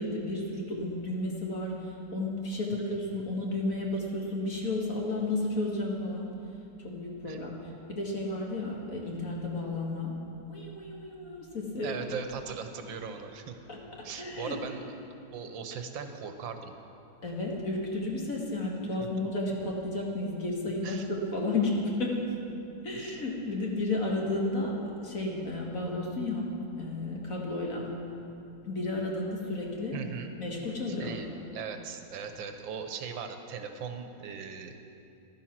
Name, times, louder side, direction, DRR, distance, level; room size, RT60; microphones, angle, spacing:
voice 1, 0.0-6.4 6.8-7.6 7.9-10.2 10.5-12.1 13.7-14.8 17.2-22.2 22.8-24.7 25.0-26.5 26.8-27.9 28.6-30.0 30.4-31.2, left 2 dB, 45° left, -2 dB, 2.2 m, -32 dB
voice 2, 11.8-13.6 14.0-14.8 15.3-16.7 19.0-19.1 20.8-21.1 23.0-23.2 29.9-30.3 30.9-31.3 31.5-34.8, right 6 dB, 90° right, 6 dB, 1.8 m, -39 dB
15.0 x 11.5 x 6.0 m, 2.7 s
omnidirectional pair, 2.0 m